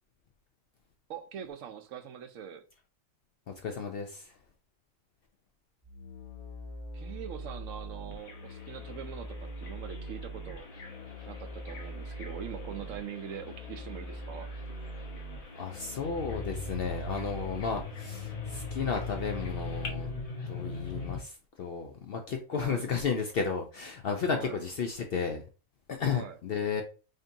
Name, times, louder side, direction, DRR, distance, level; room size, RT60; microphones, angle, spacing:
voice 1, 1.1-2.6 6.9-10.7 11.3-14.5 22.5-22.9 24.3-24.6 26.1-26.4, right 9 dB, 70° right, 8 dB, 0.9 m, -43 dB
voice 2, 3.5-4.3 15.6-20.1 20.5-25.4 25.9-26.8, left 6 dB, 60° left, 4 dB, 0.6 m, -33 dB
sound 1, 5.8-21.2, left 1 dB, 30° left, 1.0 m, -40 dB
Bird vocalization bird call bird song, 8.1-19.9, left 4 dB, 85° left, 1.3 m, -51 dB
5.0 x 2.6 x 2.6 m, 0.34 s
omnidirectional pair, 1.4 m